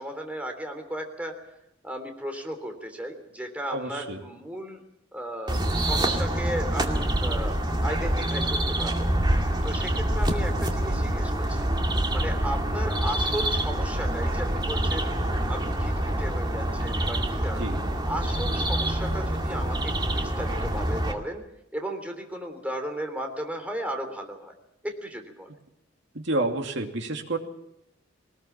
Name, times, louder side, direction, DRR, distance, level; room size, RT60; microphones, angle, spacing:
voice 1, 0.0-1.4 1.8-4.8 5.1-11.7 12.1-15.1 15.5-17.7 18.0-21.4 21.7-24.5 24.8-25.5, equal, 5° right, 4 dB, 3.4 m, -35 dB
voice 2, 3.7-4.2 17.6-17.8 26.1-27.4, right 2 dB, 65° right, 4 dB, 2.6 m, -29 dB
sound 1, 5.5-21.1, right 1 dB, 25° right, 2.3 m, -26 dB
21.5 x 20.0 x 7.4 m, 0.81 s
head